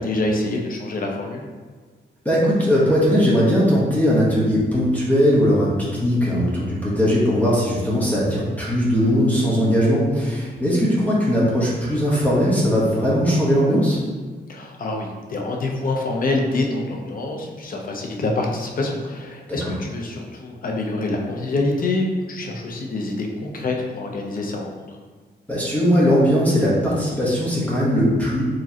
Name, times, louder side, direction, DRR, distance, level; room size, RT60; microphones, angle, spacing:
voice 1, 0.0-1.4 14.5-24.9, left 2 dB, 50° left, 1 dB, 0.6 m, -26 dB
voice 2, 2.2-14.0 19.5-19.7 25.5-28.4, equal, 10° left, -7 dB, 1.0 m, -19 dB
4.8 x 3.0 x 2.8 m, 1.5 s
wide cardioid pair, 155°, 19 cm